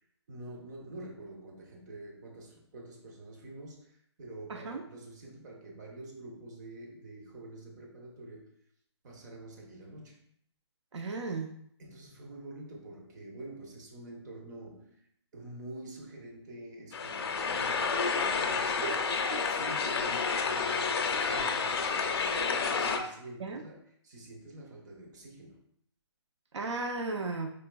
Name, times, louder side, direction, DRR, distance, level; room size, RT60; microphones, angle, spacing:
voice 1, 0.3-8.5 9.0-10.3 11.8-15.1 15.3-19.0 19.4-25.6, right 1 dB, 40° right, -1 dB, 0.8 m, -47 dB
voice 2, 4.5-4.8 10.9-11.5 18.8-19.0 19.3-19.4 23.4-23.6 26.5-27.5, right 3 dB, 90° right, 4 dB, 0.5 m, -35 dB
sound 1, 16.9-23.0, left 5 dB, 60° left, 0.5 m, -30 dB
4.4 x 2.9 x 2.2 m, 0.69 s
hypercardioid pair, 155°, 14 cm